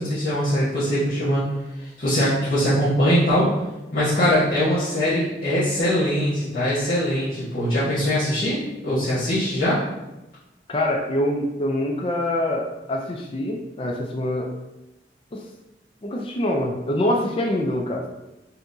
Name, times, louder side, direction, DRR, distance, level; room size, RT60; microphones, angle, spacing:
voice 1, 0.0-1.4 2.0-3.5 3.9-9.8, equal, 50° left, -12 dB, 1.1 m, -22 dB
voice 2, 10.7-14.5 15.3-15.4 16.0-18.0, left 1 dB, 30° left, 1 dB, 0.4 m, -25 dB
5.6 x 2.9 x 2.6 m, 0.99 s
head